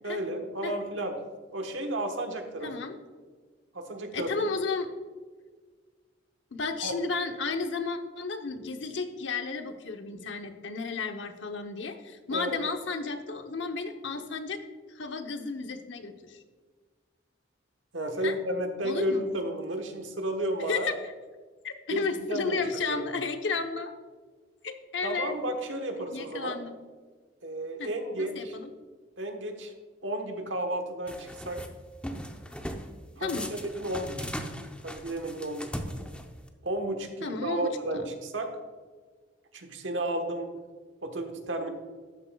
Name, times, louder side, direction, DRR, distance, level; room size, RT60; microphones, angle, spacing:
voice 1, 0.0-1.2 1.5-2.7 3.7-4.5 6.8-6.9 12.3-12.7 17.9-20.9 21.9-23.1 25.0-26.6 27.4-28.6 29.2-29.7 30.0-31.6 33.2-33.4 33.8-34.3 34.8-35.7 36.6-38.6 39.5-40.5 41.0-41.7, right 1 dB, 80° right, 4 dB, 1.2 m, -32 dB
voice 2, 2.6-2.9 4.1-4.9 6.5-14.6 14.9-16.4 18.2-18.3 18.8-19.2 20.7-20.9 21.6-23.9 24.6-25.3 26.0-26.8 27.8-27.9 28.2-28.7 33.2-33.5 37.2-38.1, left 4 dB, 70° left, 6 dB, 0.9 m, -33 dB
sound 1, 31.1-31.7 32.0-32.9 33.3-36.5, equal, 5° left, 0.7 m, -38 dB
12.5 x 8.9 x 2.3 m, 1.5 s
head